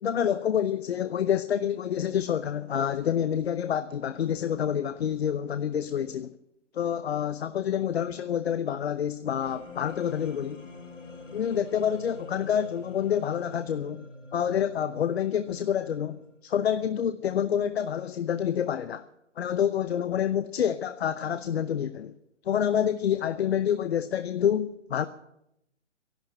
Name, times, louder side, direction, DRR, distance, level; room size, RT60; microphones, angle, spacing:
voice 1, 0.0-6.3 6.7-10.6 11.3-19.1 19.4-22.1 22.5-25.1, left 9 dB, 55° left, 0.8 m, -28 dB
sound 1, 9.4-16.4, left 2 dB, 85° left, 4.8 m, -46 dB
13.0 x 11.5 x 9.0 m
hypercardioid pair, 145°, 37 cm